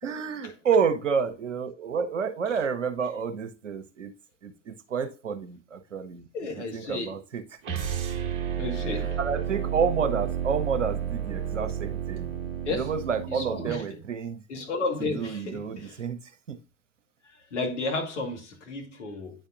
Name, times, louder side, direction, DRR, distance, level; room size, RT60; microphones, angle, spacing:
voice 1, 0.0-4.1 4.4-6.3 6.6-7.8 8.9-12.3 12.7-14.4 15.0-16.6, right 6 dB, 75° right, 0.8 m, -30 dB
voice 2, 6.3-7.1 8.6-9.2 12.6-12.9 13.3-13.8 14.5-16.0 17.3-19.3, left 3 dB, 65° left, 1.6 m, -32 dB
sound 1, 7.6-13.8, right 9 dB, 35° right, 1.1 m, -31 dB
8.9 x 4.4 x 2.5 m
figure-of-eight pair, 85°, 37 cm